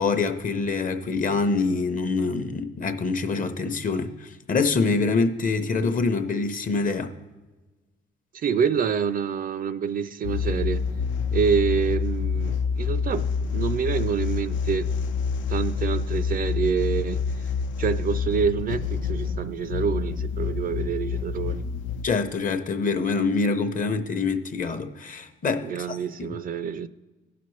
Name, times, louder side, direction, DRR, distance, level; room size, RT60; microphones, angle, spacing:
voice 1, 0.0-7.1 22.0-26.4, left 4 dB, 45° left, 0.7 m, -25 dB
voice 2, 8.3-10.8 11.3-14.9 15.5-17.3 17.8-21.6 25.6-26.9, right 7 dB, 45° right, 0.4 m, -27 dB
sound 1, 10.2-22.1, left 6 dB, 75° left, 0.4 m, -27 dB
15.5 x 5.9 x 3.1 m
cardioid pair, 90°, 20 cm